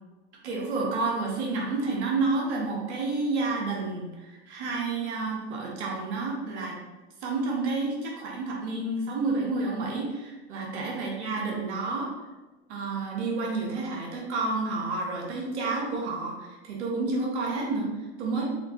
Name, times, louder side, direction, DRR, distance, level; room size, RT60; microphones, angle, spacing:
voice 1, 0.4-6.8 7.2-12.1 12.7-18.4, right 3 dB, 80° right, -2 dB, 1.4 m, -30 dB
4.9 x 3.4 x 3.0 m, 1.1 s
hypercardioid pair, 105°, 33 cm